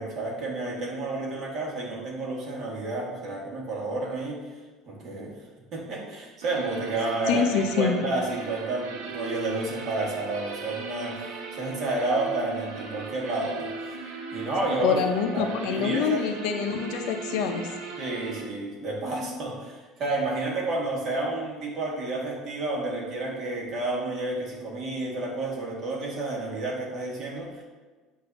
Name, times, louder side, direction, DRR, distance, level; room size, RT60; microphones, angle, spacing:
voice 1, 0.0-4.4 4.9-5.3 5.7-14.0 14.3-15.0 15.3-16.3 18.0-27.6, right 2 dB, 40° right, -2 dB, 1.7 m, -30 dB
sound 1, 6.4-18.4, right 4 dB, 85° right, 1.1 m, -38 dB
voice 2, 7.3-8.0 14.8-17.7, left 6 dB, 70° left, 5 dB, 0.7 m, -26 dB
7.9 x 2.7 x 5.9 m, 1.3 s
cardioid pair, 160°, 0 cm